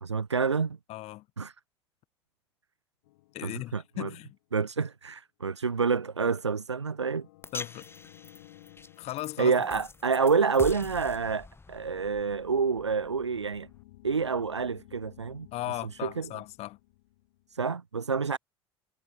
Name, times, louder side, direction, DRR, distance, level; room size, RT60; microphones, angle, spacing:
voice 1, 0.0-0.8 1.4-1.5 3.4-4.1 4.5-7.3 9.4-13.7 14.0-15.5 16.0-16.3 17.5-18.4, right 5 dB, 90° right, 0.4 m, -28 dB
voice 2, 0.9-1.3 3.3-4.4 7.5-7.9 9.0-9.5 15.5-16.8, left 16 dB, 50° left, 2.2 m, -37 dB
sound 1, 3.0-4.5 6.8-11.2 12.6-17.6, left 20 dB, 65° left, 7.2 m, -57 dB
sound 2, 7.4-13.8, left 3 dB, 15° left, 5.7 m, -45 dB
figure-of-eight pair, 65°, 14 cm